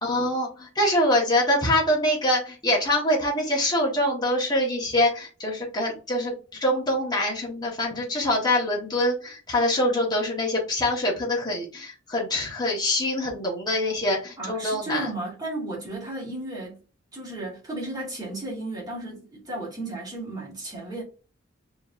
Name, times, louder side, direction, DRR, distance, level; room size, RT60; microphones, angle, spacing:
voice 1, 0.0-15.1, left 1 dB, 20° left, 1.4 m, -24 dB
voice 2, 14.4-16.8 17.1-21.0, right 2 dB, 20° right, 2.0 m, -34 dB
5.0 x 3.1 x 2.5 m
head